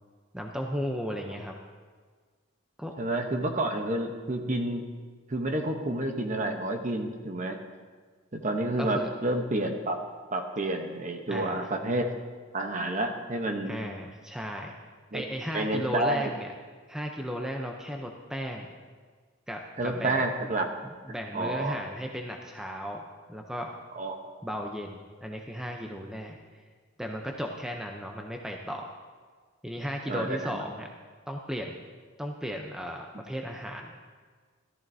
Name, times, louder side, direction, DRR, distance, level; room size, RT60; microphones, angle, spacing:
voice 1, 0.3-1.5 2.8-2.9 8.8-9.1 11.3-11.7 13.7-14.7 15.1-16.5 16.9-18.7 19.5-20.2 20.8-23.0 23.3-23.7 24.4-26.4 27.0-29.0 29.6-30.9 31.3-31.7 32.2-34.0, equal, 5° right, 1 dB, 0.6 m, -35 dB
voice 2, 3.0-4.8 5.3-7.6 8.3-10.0 10.3-12.1 12.5-13.8 15.1-15.2 15.5-16.3 19.8-20.7 21.3-21.8 23.9-24.2 30.1-30.6, right 1 dB, 35° right, 4 dB, 0.9 m, -29 dB
14.0 x 14.0 x 2.7 m, 1.5 s
head